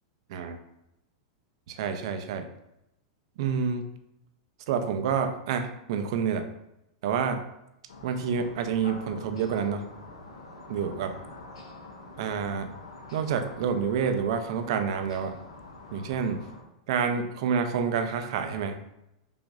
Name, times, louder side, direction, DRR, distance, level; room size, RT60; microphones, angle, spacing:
voice 1, 1.7-2.5 3.4-3.9 4.7-6.5 7.0-7.4 8.0-9.9 10.7-11.1 12.2-12.7 13.1-15.3 15.9-16.4 16.9-18.8, right 6 dB, 65° right, 7 dB, 0.4 m, -28 dB
sound 1, 7.9-16.6, left 2 dB, 85° left, 0.6 m, -46 dB
4.9 x 2.5 x 2.4 m, 0.86 s
hypercardioid pair, 110°, 3 cm